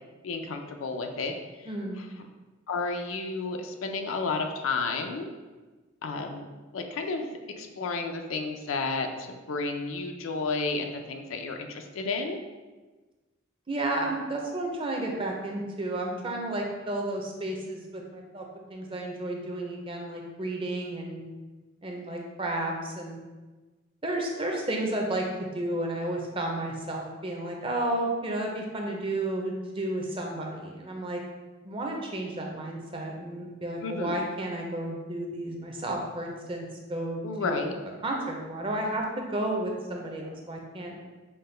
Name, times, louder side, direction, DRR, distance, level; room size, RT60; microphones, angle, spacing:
voice 1, 0.2-1.3 1.6-1.7 2.0-2.1 2.7-5.3 6.0-6.4 6.7-12.4 33.8-34.2 37.2-37.7, left 3 dB, 85° left, 5 dB, 0.5 m, -32 dB
voice 2, 1.7-2.0 13.7-18.4 18.7-21.2 21.8-23.2 24.0-25.2 25.5-31.2 31.6-37.8 38.0-40.9, right 1 dB, 25° right, 0 dB, 0.5 m, -32 dB
5.5 x 2.2 x 3.2 m, 1.2 s
head